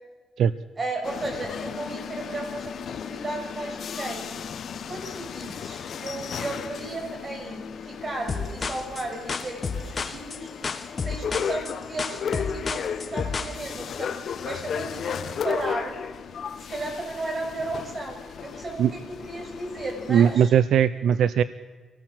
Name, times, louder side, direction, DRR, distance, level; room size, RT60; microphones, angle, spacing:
voice 1, 0.8-4.3 4.7-10.5 11.0-16.0 16.7-20.5, right 2 dB, 30° right, 2 dB, 6.5 m, -34 dB
sound 1, 1.0-20.4, left 7 dB, 60° left, 1.2 m, -35 dB
sound 2, 8.3-13.6, left 5 dB, 35° left, 1.7 m, -31 dB
voice 2, 20.1-21.4, right 9 dB, 75° right, 14 dB, 0.6 m, -19 dB
26.0 x 18.0 x 7.5 m, 1.5 s
cardioid pair, 120°, 0 cm